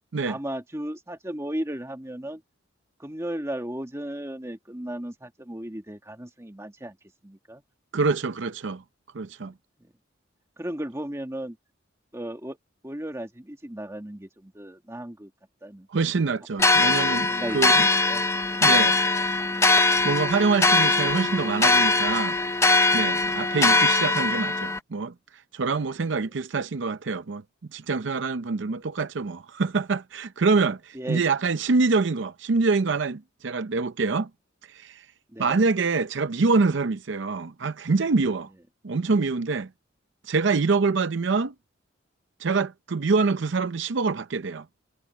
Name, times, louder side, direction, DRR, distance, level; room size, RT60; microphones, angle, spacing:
voice 1, 0.3-2.4 3.0-7.0 7.2-7.6 9.8-9.9 10.6-11.6 12.1-12.6 12.8-15.3 15.6-15.9 17.3-18.2 26.0-26.1 30.9-31.2 35.3-35.6, right 1 dB, 15° right, 1.8 m, -35 dB
voice 2, 7.9-8.8 9.1-9.5 15.9-17.9 18.6-19.0 19.8-22.4 22.9-25.1 25.5-27.4 27.7-34.3 34.7-35.1 35.4-38.5 38.8-39.7 40.2-41.5 42.4-44.7, right 4 dB, 65° right, 0.6 m, -25 dB
sound 1, 16.6-24.8, left 3 dB, 15° left, 0.8 m, -21 dB
head